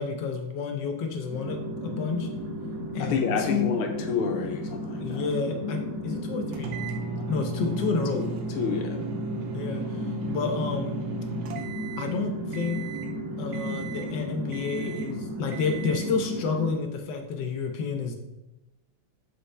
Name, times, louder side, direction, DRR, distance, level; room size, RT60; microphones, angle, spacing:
voice 1, 0.0-2.3 2.9-3.8 5.0-6.7 7.3-8.2 9.5-10.9 12.0-12.8 13.4-18.2, left 5 dB, 60° left, 4 dB, 1.4 m, -30 dB
sound 1, 1.3-16.7, equal, 50° right, 2.0 m, -34 dB
voice 2, 3.0-5.2 8.1-8.2 8.6-9.0, left 5 dB, 80° left, 4 dB, 1.7 m, -29 dB
sound 2, 6.5-12.2 12.5-13.1 13.5-14.2 14.5-15.1 15.5-16.1, right 5 dB, 75° right, 1.6 m, -37 dB
6.9 x 4.8 x 3.3 m, 0.98 s
omnidirectional pair, 2.4 m